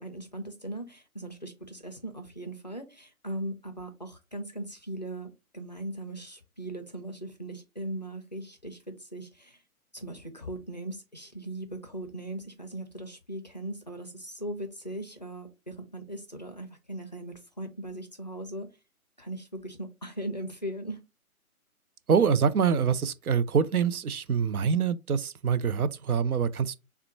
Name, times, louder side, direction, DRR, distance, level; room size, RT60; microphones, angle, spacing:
voice 1, 0.0-9.6 9.9-18.7 19.2-21.0, right 1 dB, 35° left, 0.4 m, -39 dB
voice 2, 22.1-26.8, right 6 dB, 85° right, 0.6 m, -25 dB
3.6 x 2.2 x 4.3 m
figure-of-eight pair, 140°, 43 cm